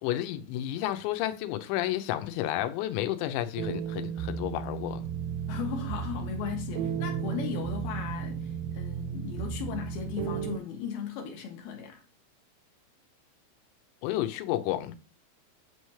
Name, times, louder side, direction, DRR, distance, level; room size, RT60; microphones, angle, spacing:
voice 1, 0.0-5.0 14.0-15.0, left 13 dB, 90° left, 3.0 m, -31 dB
sound 1, 3.6-10.6, right 7 dB, 85° right, 2.1 m, -34 dB
voice 2, 5.5-12.0, left 7 dB, 75° left, 2.5 m, -37 dB
8.6 x 3.2 x 5.6 m
omnidirectional pair, 5.0 m